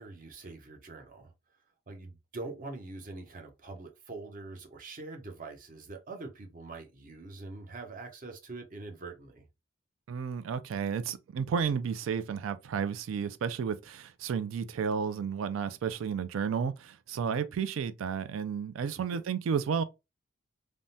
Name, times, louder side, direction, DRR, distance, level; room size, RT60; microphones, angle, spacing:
voice 1, 0.0-1.3 1.9-9.4 19.1-19.2, right 3 dB, 45° right, 0.7 m, -44 dB
voice 2, 10.1-19.8, right 6 dB, 85° right, 0.3 m, -32 dB
3.4 x 2.1 x 2.6 m
head